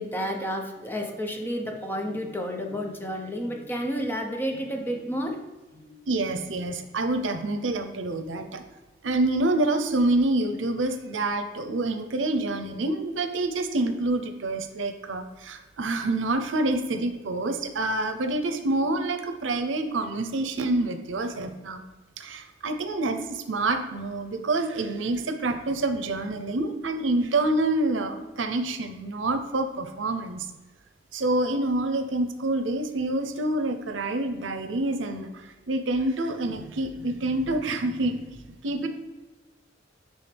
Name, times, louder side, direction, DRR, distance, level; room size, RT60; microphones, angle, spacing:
voice 1, 0.0-5.4 5.7-6.0, equal, 10° left, 2 dB, 0.8 m, -31 dB
voice 2, 6.1-8.6 9.0-21.8 22.2-30.5 31.1-38.2 38.6-38.9, right 2 dB, 90° right, 7 dB, 0.7 m, -27 dB
10.5 x 3.5 x 3.4 m, 1.2 s
head